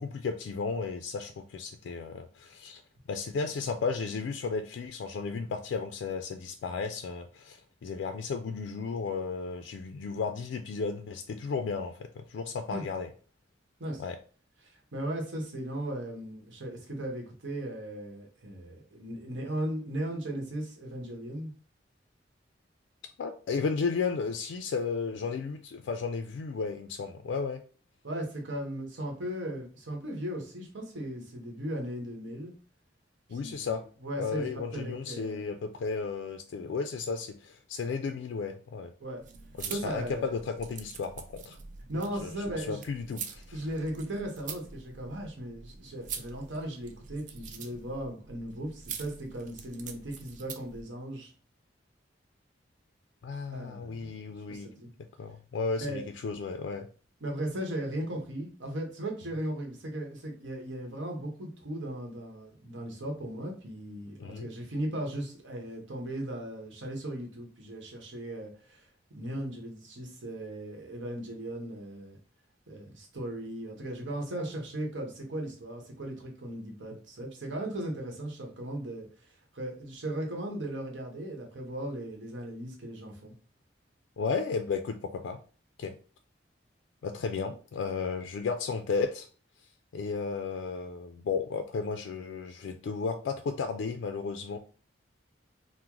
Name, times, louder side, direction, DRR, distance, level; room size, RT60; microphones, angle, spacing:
voice 1, 0.0-2.8 3.1-13.1 14.0-14.2 23.2-27.6 33.3-33.8 34.2-38.9 39.6-41.6 42.2-43.6 53.2-54.7 55.2-56.9 64.2-64.5 84.2-85.4 85.8-86.0 87.0-89.3 89.6-89.7 89.9-94.6, left 5 dB, 80° left, 6 dB, 0.3 m, -34 dB
voice 2, 14.6-21.5 28.0-32.5 33.3-35.4 39.0-39.2 39.7-40.3 41.9-42.8 43.5-51.3 53.5-54.2 54.5-54.9 55.8-56.0 57.2-68.9 69.1-72.2 72.7-83.3, right 1 dB, 85° right, 1 dB, 0.9 m, -37 dB
sound 1, 39.2-50.8, right 6 dB, 45° right, 0.3 m, -45 dB
2.9 x 2.0 x 3.6 m, 0.39 s
head